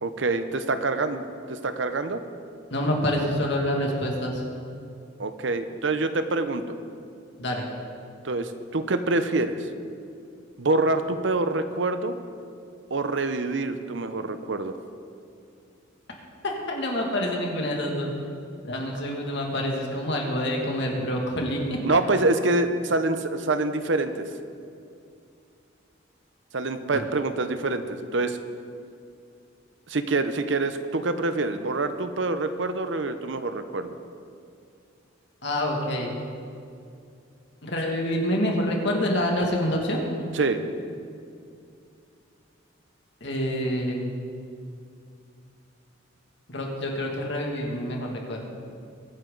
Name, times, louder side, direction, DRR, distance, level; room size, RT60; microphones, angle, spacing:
voice 1, 0.0-2.2 5.2-6.8 8.2-9.7 10.6-12.1 12.9-14.7 21.8-24.2 26.5-28.4 29.9-33.9 40.3-40.6, right 2 dB, 65° right, 10 dB, 0.8 m, -26 dB
voice 2, 2.7-4.4 7.4-7.6 16.4-18.1 18.6-22.0 26.9-27.0 35.4-36.1 37.6-40.0 43.2-44.1 46.5-48.4, left 1 dB, 60° left, 0 dB, 2.4 m, -27 dB
23.0 x 9.3 x 4.0 m, 2.4 s
head